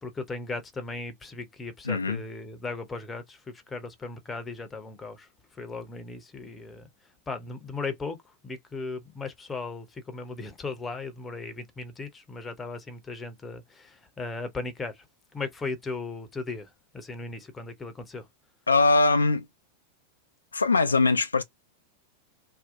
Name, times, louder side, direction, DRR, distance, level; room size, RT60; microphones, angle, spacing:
voice 1, 0.0-5.3 5.6-6.9 7.3-8.2 8.4-15.1 15.3-18.3, left 3 dB, 15° left, 0.7 m, -37 dB
voice 2, 1.8-2.2 18.7-19.5 20.5-21.4, left 3 dB, 75° left, 0.3 m, -22 dB
2.7 x 2.2 x 2.5 m
figure-of-eight pair, 90°, 0 cm